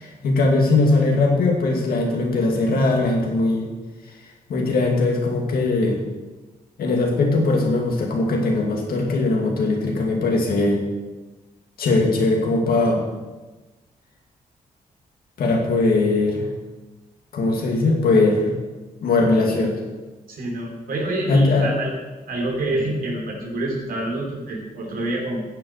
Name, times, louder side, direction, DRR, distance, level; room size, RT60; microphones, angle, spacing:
voice 1, 0.0-3.7 4.5-6.0 6.8-10.8 11.8-13.0 15.4-16.5 17.3-18.5 19.0-19.7 21.3-21.7, left 2 dB, 80° left, 1 dB, 2.3 m, -20 dB
voice 2, 20.3-21.9 22.3-25.4, right 1 dB, 75° right, -1 dB, 3.3 m, -27 dB
9.4 x 7.7 x 6.5 m, 1.2 s
cardioid pair, 75°, 15 cm